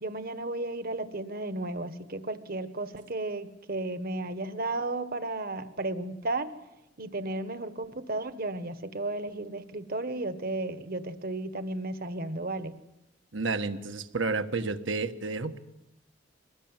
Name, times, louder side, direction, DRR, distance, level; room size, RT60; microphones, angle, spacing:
voice 1, 0.0-6.5 7.0-12.8, right 2 dB, 50° right, 10 dB, 1.5 m, -34 dB
voice 2, 13.3-15.6, right 3 dB, 75° right, 8 dB, 1.5 m, -31 dB
24.0 x 19.5 x 9.1 m, 0.90 s
head